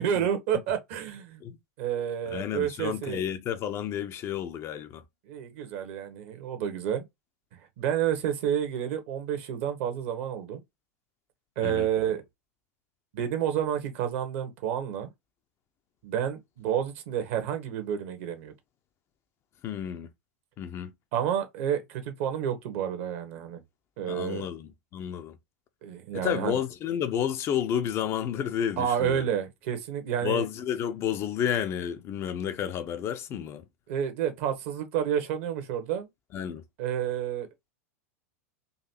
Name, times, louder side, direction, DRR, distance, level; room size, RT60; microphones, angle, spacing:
voice 1, 0.0-1.4 1.8-3.2 5.3-7.0 7.8-10.6 11.6-12.2 13.1-15.1 16.0-18.5 21.1-23.6 24.0-24.5 25.8-26.6 28.8-30.4 33.9-36.1 36.8-37.5, right 9 dB, 55° right, 1.2 m, -30 dB
voice 2, 2.3-5.0 11.6-11.9 19.6-20.1 20.6-20.9 24.1-25.4 26.1-29.3 30.2-33.6 36.3-36.6, left 9 dB, 35° left, 0.6 m, -31 dB
4.0 x 2.7 x 2.8 m
figure-of-eight pair, 90°, 8 cm